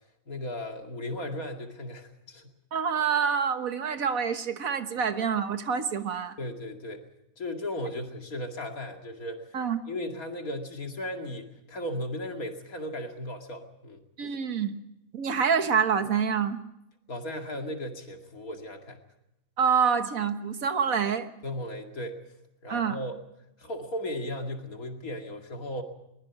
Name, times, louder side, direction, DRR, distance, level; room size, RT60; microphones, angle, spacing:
voice 1, 0.3-2.5 5.0-5.1 6.4-7.0 7.4-9.6 9.9-14.0 17.1-19.0 21.4-22.2 22.6-23.2 23.6-25.8, left 1 dB, 75° left, 3 dB, 2.8 m, -36 dB
voice 2, 2.7-6.3 9.5-9.8 14.2-14.8 15.1-16.6 19.6-21.3 22.7-23.0, right 6 dB, 70° right, 9 dB, 1.7 m, -27 dB
22.5 x 20.5 x 6.0 m, 0.85 s
omnidirectional pair, 1.5 m